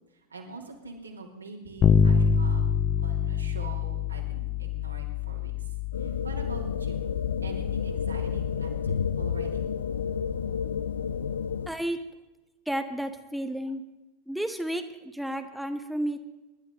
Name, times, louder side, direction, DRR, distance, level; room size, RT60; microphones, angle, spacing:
voice 1, 0.3-2.6 3.0-5.7 6.0-7.1 7.4-9.6, right 3 dB, 80° right, 0 dB, 2.8 m, -44 dB
Bass guitar, 1.8-11.5, left 7 dB, 30° left, 0.7 m, -28 dB
sound 1, 5.9-11.7, left 7 dB, 70° left, 0.6 m, -30 dB
voice 2, 11.7-12.0 12.7-13.8 14.3-16.2, right 1 dB, ahead, 7 dB, 0.9 m, -32 dB
25.0 x 11.5 x 3.8 m, 1.0 s
figure-of-eight pair, 90°, 0 cm